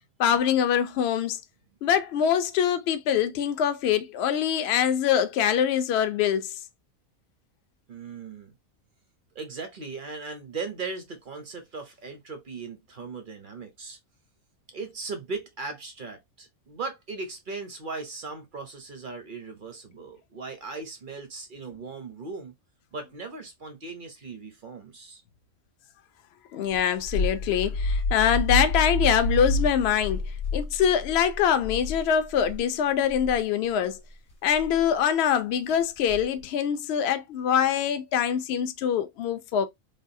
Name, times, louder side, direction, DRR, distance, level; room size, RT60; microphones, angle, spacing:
voice 1, 0.2-1.4 1.8-6.6 26.5-30.2 30.5-34.0 34.4-39.7, left 9 dB, 65° left, 0.7 m, -24 dB
voice 2, 7.9-8.5 9.3-14.0 14.7-22.5 22.9-25.2, right 4 dB, 50° right, 0.6 m, -38 dB
sound 1, 26.7-32.6 33.0-33.3 34.5-34.8 36.0-36.4, left 1 dB, 30° left, 0.7 m, -29 dB
3.4 x 2.3 x 2.6 m
omnidirectional pair, 1.4 m